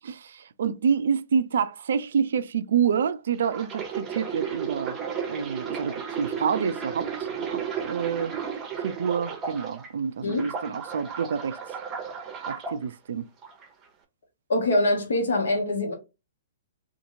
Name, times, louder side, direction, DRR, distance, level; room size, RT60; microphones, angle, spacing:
voice 1, 0.1-5.0 5.3-8.4 8.8-11.6 12.5-13.3, right 7 dB, 65° right, 0.3 m, -28 dB
sound 1, 3.4-9.9 10.3-12.8 13.4-13.7, right 7 dB, 25° right, 0.8 m, -34 dB
voice 2, 14.5-15.9, left 1 dB, 70° left, 1.1 m, -24 dB
2.8 x 2.5 x 2.6 m
hypercardioid pair, 120°, 0 cm